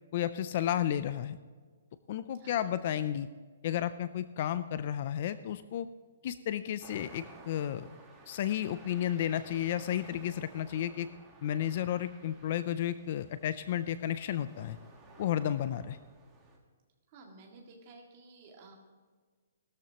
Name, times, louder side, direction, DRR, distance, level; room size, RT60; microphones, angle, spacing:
voice 1, 0.1-1.4 2.1-3.3 3.6-5.9 6.2-7.9 8.3-11.1 11.4-14.8 15.2-16.0, left 11 dB, 30° left, 14 dB, 0.3 m, -32 dB
sound 1, 6.8-16.6, right 2 dB, 10° right, 1.4 m, -55 dB
voice 2, 17.1-18.7, right 3 dB, 25° right, 0 dB, 2.0 m, -53 dB
17.0 x 13.0 x 2.9 m, 1.5 s
hypercardioid pair, 180°, 0 cm